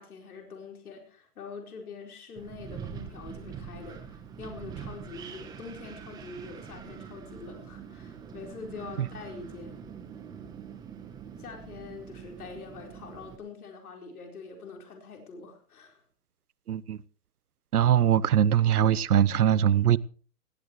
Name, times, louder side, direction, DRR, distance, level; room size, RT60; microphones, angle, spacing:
voice 1, 0.0-9.9 11.4-16.0, left 4 dB, 70° left, 4.6 m, -44 dB
Wind, 2.4-13.4, right 7 dB, 10° right, 1.1 m, -44 dB
voice 2, 16.7-17.0 17.7-20.0, right 10 dB, 75° right, 1.0 m, -22 dB
18.0 x 18.0 x 3.2 m
hypercardioid pair, 155°, 45 cm